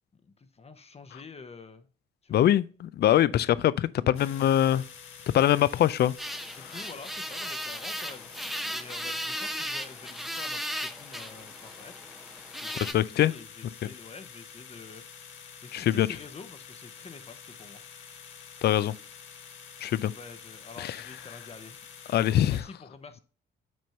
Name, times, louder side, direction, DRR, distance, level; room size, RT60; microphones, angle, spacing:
voice 1, 0.1-1.9 2.2-2.5 5.8-5.9 6.5-8.3 8.7-11.9 12.5-15.1 15.6-17.8 20.0-21.8 22.5-23.2, left 4 dB, 30° left, 0.8 m, -47 dB
voice 2, 2.3-4.8 5.3-6.1 12.8-13.3 13.8-13.9 15.7-16.1 18.6-18.9 19.8-20.1 20.8-21.0 22.1-22.6, left 12 dB, 55° left, 0.4 m, -23 dB
sound 1, 4.1-22.6, left 7 dB, 80° left, 1.3 m, -48 dB
sound 2, 6.2-12.9, equal, ahead, 0.6 m, -36 dB
6.2 x 4.4 x 5.6 m
cardioid pair, 90°, 20 cm